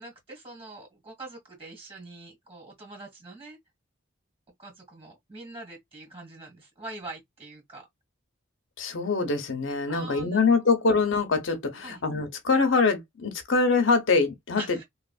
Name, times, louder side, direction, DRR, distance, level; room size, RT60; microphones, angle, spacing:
voice 1, 0.0-3.6 4.6-7.9 9.9-10.5 11.8-12.0 14.6-14.8, right 2 dB, 30° right, 1.9 m, -43 dB
voice 2, 8.8-14.8, left 4 dB, 70° left, 0.7 m, -24 dB
2.9 x 2.4 x 2.3 m
head